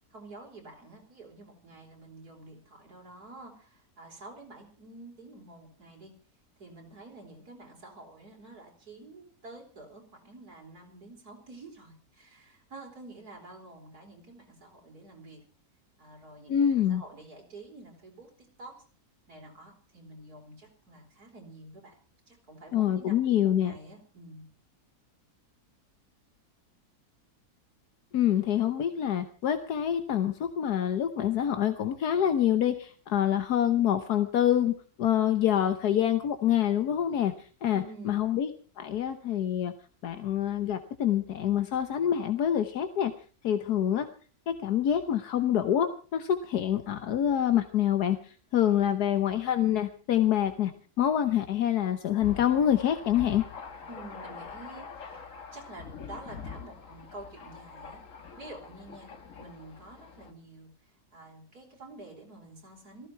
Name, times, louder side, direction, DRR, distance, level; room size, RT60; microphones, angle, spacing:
voice 1, 0.1-6.1 6.6-15.4 16.0-18.3 18.6-18.8 19.3-22.0 22.3-24.4 37.7-38.2 53.9-55.3 55.5-58.0 58.4-59.1 59.4-60.7 61.1-63.1, right 2 dB, 70° right, 0 dB, 5.0 m, -48 dB
voice 2, 16.5-17.0 22.7-23.7 28.1-38.5 38.8-39.7 40.0-43.1 43.4-44.1 44.5-50.7 51.0-53.4, left 10 dB, 80° left, 8 dB, 1.5 m, -26 dB
Thunder, 52.2-60.3, left 5 dB, 55° left, 1.9 m, -44 dB
18.0 x 15.0 x 4.6 m, 0.39 s
omnidirectional pair, 1.7 m